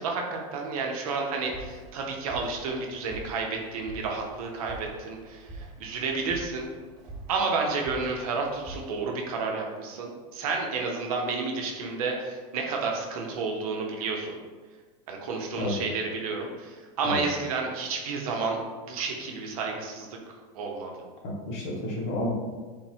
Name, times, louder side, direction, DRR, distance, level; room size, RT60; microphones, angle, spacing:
voice 1, 0.0-5.4 5.8-6.7 7.3-14.4 15.1-18.6 18.9-20.1 20.5-20.9, right 4 dB, 80° right, 1 dB, 0.6 m, -31 dB
sound 1, 1.3-8.8, right 2 dB, 40° right, 0.9 m, -45 dB
voice 2, 21.2-22.3, left 1 dB, 55° left, -2 dB, 0.9 m, -31 dB
3.6 x 2.0 x 2.7 m, 1.4 s
supercardioid pair, 125°, 19 cm